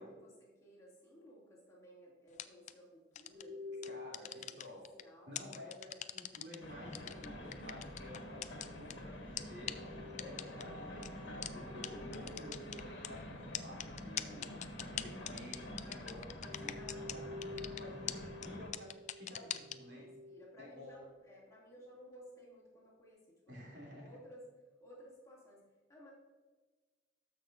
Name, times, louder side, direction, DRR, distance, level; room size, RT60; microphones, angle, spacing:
voice 1, 0.0-4.6 5.0-5.4 15.8-17.4 20.0-23.6 24.0-24.5 24.8-26.1, equal, 20° left, -6 dB, 2.4 m, -58 dB
sound 1, 2.3-2.7 3.2-3.4 3.8-5.0 5.4-6.6 6.9-8.9 9.4-9.5 9.7-9.8 10.2-10.6 11.0-11.1 11.4-11.5 11.8-11.9 12.1-13.1 13.5-17.2 17.4-17.8 18.1-18.2 18.4-18.5 18.7-19.8, left 11 dB, 40° left, 0.3 m, -41 dB
sound 2, 3.3-5.2 9.6-14.0 15.4-21.6, left 2 dB, 20° right, 2.5 m, -51 dB
voice 2, 3.8-4.9 5.3-9.8 10.2-14.5 14.9-16.8 17.1-20.1 20.6-21.0 23.5-24.2, left 1 dB, 70° right, -3 dB, 2.8 m, -52 dB
sound 3, 6.6-18.7, left 1 dB, 70° left, 1.5 m, -48 dB
13.5 x 6.0 x 2.6 m, 1.3 s
head